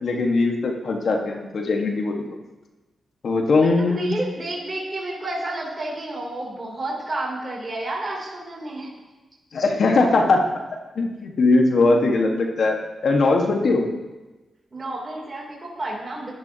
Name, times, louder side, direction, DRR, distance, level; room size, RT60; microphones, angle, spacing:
voice 1, 0.0-2.2 3.2-4.1 9.5-10.4 11.0-12.8 13.0-13.9, left 3 dB, 65° left, 2 dB, 1.6 m, -20 dB
voice 2, 3.6-8.9 14.7-16.3, right 2 dB, 35° right, -3 dB, 3.2 m, -31 dB
15.0 x 11.0 x 2.9 m, 1.1 s
supercardioid pair, 45°, 0 cm